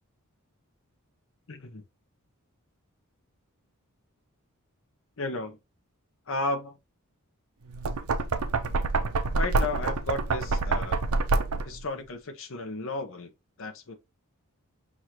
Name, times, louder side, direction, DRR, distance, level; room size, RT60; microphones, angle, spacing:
voice 1, 1.5-1.8 5.2-5.6 6.3-6.7 9.4-11.0 11.6-13.3 13.6-13.9, left 2 dB, 60° left, 0.8 m, -33 dB
Knock, 7.7-11.8, right 3 dB, 75° right, 0.5 m, -27 dB
6.2 x 2.5 x 2.9 m
head